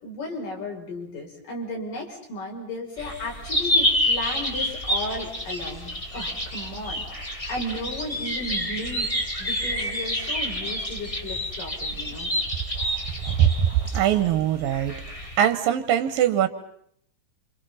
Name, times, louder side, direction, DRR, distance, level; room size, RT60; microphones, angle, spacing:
voice 1, 0.0-9.1 9.4-12.3, left 1 dB, 70° left, -1 dB, 7.7 m, -35 dB
sound 1, 3.0-15.4, equal, 10° left, 2.7 m, -28 dB
voice 2, 13.4-15.0 15.4-16.5, right 10 dB, 85° right, 10 dB, 2.9 m, -21 dB
29.5 x 27.5 x 5.7 m, 0.68 s
omnidirectional pair, 3.9 m